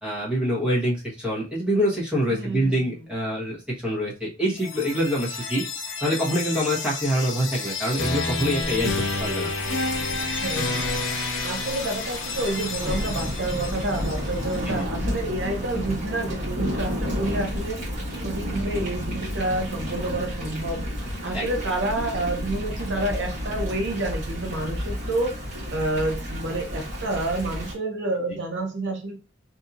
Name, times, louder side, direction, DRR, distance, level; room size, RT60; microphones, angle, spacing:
voice 1, 0.0-5.6 6.0-8.9 9.2-9.5 14.6-14.9 21.3-21.5 28.3-28.4, equal, 5° right, -6 dB, 1.1 m, -25 dB
voice 2, 2.3-3.1 10.4-10.9 11.4-17.8 18.2-20.8 21.2-25.3 25.7-29.2, right 2 dB, 60° right, 3 dB, 0.7 m, -29 dB
sound 1, 4.6-14.5, left 3 dB, 75° left, 0.7 m, -30 dB
Thunder / Rain, 8.6-27.7, equal, 40° right, 1.3 m, -31 dB
2.8 x 2.7 x 2.4 m, 0.34 s
head